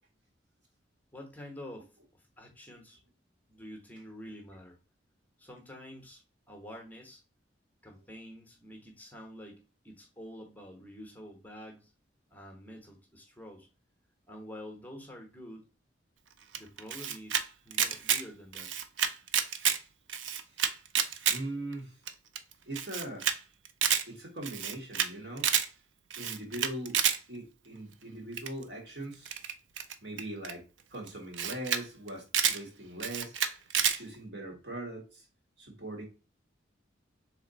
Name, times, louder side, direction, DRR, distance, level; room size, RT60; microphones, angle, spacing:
voice 1, 1.1-3.0 3.5-4.8 5.4-6.2 6.5-7.2 7.8-9.6 9.8-11.9 12.3-13.7 14.3-15.7 16.5-18.7, equal, 10° left, 3 dB, 0.8 m, -47 dB
Camera, 16.5-17.4 17.7-18.2 18.5-19.8 20.1-21.4 21.7-21.8 22.1-22.2 22.4-22.5 22.8-23.3 23.6-24.0 24.4-25.1 25.4-25.7 26.1-27.2 28.4-28.6 29.3-30.5 31.1-31.2 31.3-31.8 32.1-32.6 33.0-34.0, right 8 dB, 80° right, 0.5 m, -29 dB
voice 2, 21.3-22.0 22.6-23.3 24.1-25.5 26.2-27.0 27.3-29.3 30.0-30.6 30.9-35.2 35.6-36.0, right 1 dB, 65° right, 1 dB, 1.8 m, -41 dB
4.0 x 3.3 x 3.9 m, 0.33 s
head